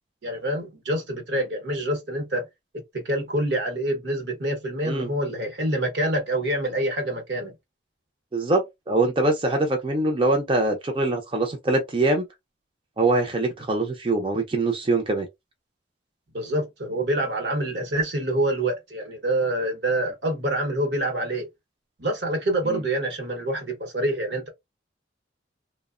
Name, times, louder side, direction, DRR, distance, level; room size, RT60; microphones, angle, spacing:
voice 1, 0.2-2.5 2.9-7.5 16.3-21.5 22.0-24.5, right 1 dB, 65° right, 0.8 m, -26 dB
voice 2, 8.3-12.2 13.0-15.3 22.7-22.8, right 2 dB, 30° right, 0.4 m, -23 dB
2.7 x 2.0 x 2.4 m
head